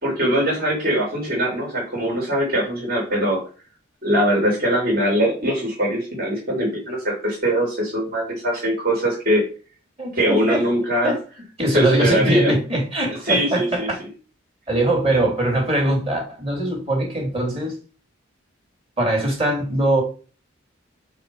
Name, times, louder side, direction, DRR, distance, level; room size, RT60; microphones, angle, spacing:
voice 1, 0.0-3.4 4.0-9.4 10.2-11.1 11.7-12.5 13.2-13.9 15.1-15.2, equal, 50° right, 3.2 m, -21 dB
voice 2, 10.0-10.6 11.0-11.2 11.6-14.0 14.7-17.8 19.0-20.0, right 1 dB, 30° right, 2.8 m, -21 dB
5.5 x 4.7 x 5.3 m
head